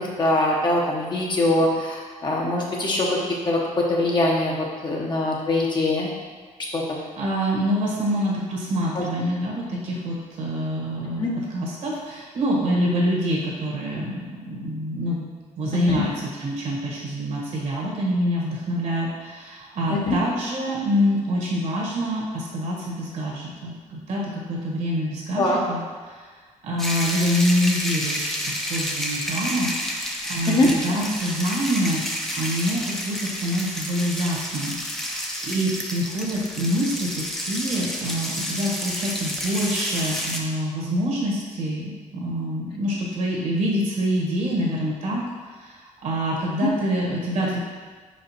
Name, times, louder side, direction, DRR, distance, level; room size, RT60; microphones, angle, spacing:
voice 1, 0.0-3.2 3.5-6.1 6.7-6.8 8.9-9.0 11.2-11.3 15.7-16.0 19.9-20.2 25.4-25.6 30.5-30.7 46.6-46.7, left 2 dB, 35° left, -2 dB, 0.8 m, -23 dB
voice 2, 7.2-15.3 15.6-16.1 16.4-25.8 26.1-26.3 26.6-32.0 32.3-47.6, equal, 65° right, -4 dB, 1.6 m, -26 dB
sound 1, 26.8-40.4, equal, 5° left, 0.6 m, -30 dB
5.4 x 5.1 x 4.4 m, 1.5 s
cardioid pair, 170°, 13 cm